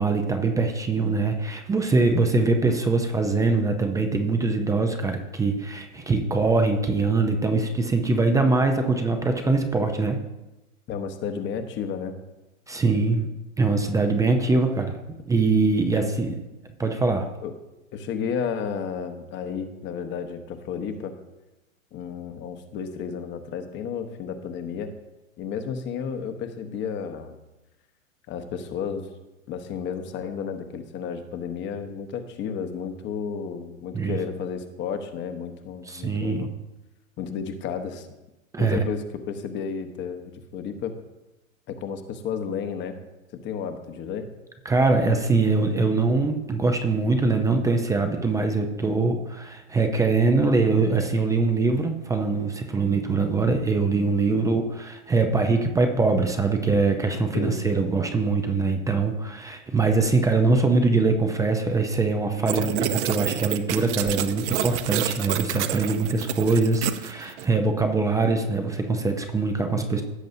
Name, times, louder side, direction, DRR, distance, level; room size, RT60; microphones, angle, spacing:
voice 1, 0.0-10.2 12.7-13.3 13.6-15.0 15.3-16.3 16.8-17.3 33.9-34.2 35.9-36.5 38.5-38.8 44.7-70.0, right 3 dB, 10° right, 5 dB, 0.6 m, -23 dB
voice 2, 10.9-12.2 15.9-16.2 17.4-17.5 17.9-21.1 21.9-24.9 25.4-27.3 28.3-29.1 29.5-36.5 37.2-38.1 38.6-41.0 41.7-43.0 43.4-44.3 54.3-54.6 57.3-57.6, left 6 dB, 25° left, 7 dB, 1.1 m, -32 dB
sound 1, 62.5-67.5, right 11 dB, 55° right, 0.9 m, -28 dB
16.0 x 7.4 x 2.7 m, 1.0 s
hypercardioid pair, 120°, 41 cm